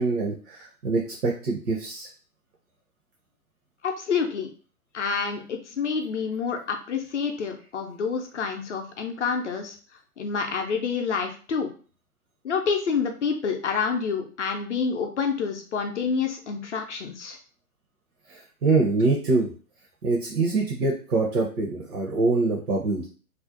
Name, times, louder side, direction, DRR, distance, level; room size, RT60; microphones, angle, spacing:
voice 1, 0.0-2.1 18.3-19.5 20.0-23.1, right 3 dB, 70° right, -1 dB, 0.7 m, -24 dB
voice 2, 3.8-4.5 4.9-9.8 10.2-11.7 12.4-17.4, left 5 dB, 55° left, 4 dB, 0.5 m, -28 dB
2.5 x 2.1 x 2.4 m, 0.39 s
figure-of-eight pair, 120°, 45 cm